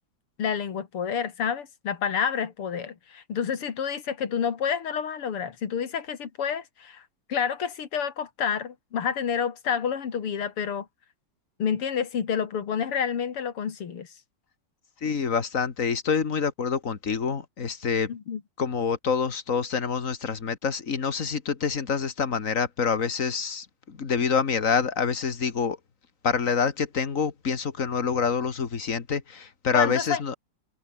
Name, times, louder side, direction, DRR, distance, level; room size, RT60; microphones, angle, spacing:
voice 1, 0.4-7.0 7.3-10.9 11.6-14.1 18.1-18.4 29.7-30.2, left 7 dB, 85° left, 3.0 m, -29 dB
voice 2, 15.0-18.1 18.6-25.8 26.2-30.4, left 6 dB, 40° left, 2.1 m, -26 dB
omnidirectional pair, 2.4 m